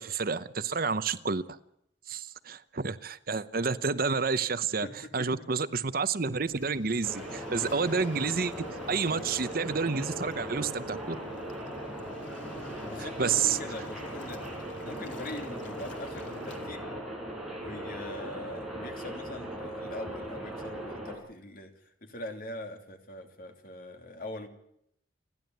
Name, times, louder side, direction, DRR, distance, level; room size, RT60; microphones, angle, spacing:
voice 1, 0.0-1.4 2.1-4.9 5.1-11.2 13.0-13.6, right 5 dB, 50° right, 0.8 m, -29 dB
voice 2, 4.8-5.5 12.8-16.9 17.6-24.5, left 1 dB, 50° left, 2.9 m, -42 dB
Waves surf, 6.4-16.7, left 2 dB, 85° left, 2.7 m, -48 dB
sound 1, 7.0-21.2, right 1 dB, ahead, 4.9 m, -39 dB
29.0 x 11.0 x 9.3 m
head